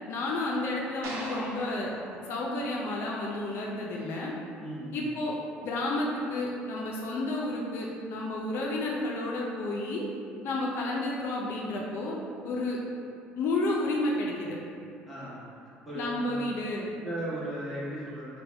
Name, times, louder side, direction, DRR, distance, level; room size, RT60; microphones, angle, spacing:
voice 1, 0.1-1.9 2.3-4.3 4.9-5.3 5.6-10.0 10.4-12.2 12.4-12.8 13.4-14.6 15.9-16.9, left 2 dB, 60° left, -3 dB, 0.4 m, -31 dB
sound 1, 1.0-3.4, right 1 dB, 80° right, 0.6 m, -42 dB
voice 2, 4.6-5.0 15.1-15.6 15.9-16.3 17.0-18.4, right 1 dB, ahead, -9 dB, 1.1 m, -37 dB
3.3 x 2.2 x 3.3 m, 2.4 s
supercardioid pair, 100°, 4 cm